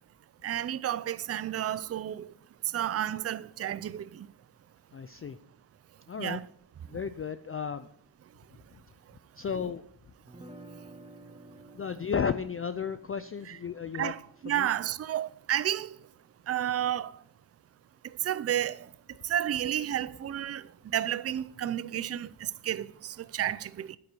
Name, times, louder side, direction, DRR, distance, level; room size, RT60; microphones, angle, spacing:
voice 1, 0.4-2.3 2.7-4.3 6.2-6.4 13.5-13.6 14.0-15.9 16.5-17.1 18.2-18.9 19.2-24.0, right 11 dB, 35° right, 0.4 m, -31 dB
voice 2, 4.9-5.4 6.1-6.4 6.9-7.9 9.4-9.8 11.7-14.1 14.5-14.7, left 6 dB, 30° left, 0.4 m, -33 dB
sound 1, 10.3-16.2, right 1 dB, 10° right, 0.8 m, -53 dB
9.6 x 9.2 x 4.6 m
wide cardioid pair, 130°, 47 cm